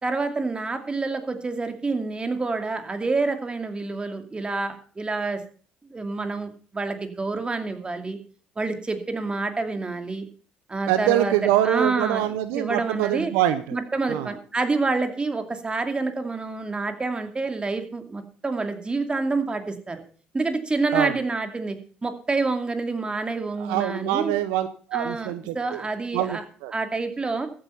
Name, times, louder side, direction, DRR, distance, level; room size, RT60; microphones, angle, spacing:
voice 1, 0.0-5.4 5.9-8.2 8.6-10.3 10.7-11.3 11.6-12.2 12.5-13.3 13.7-20.0 20.3-24.3 24.9-26.4 26.7-27.5, right 3 dB, 25° right, 7 dB, 2.5 m, -28 dB
voice 2, 10.9-13.8 14.1-14.3 20.9-21.2 23.6-25.8 26.1-26.7, right 12 dB, 80° right, 12 dB, 0.8 m, -24 dB
14.5 x 8.8 x 5.6 m, 0.43 s
hypercardioid pair, 55°, 4 cm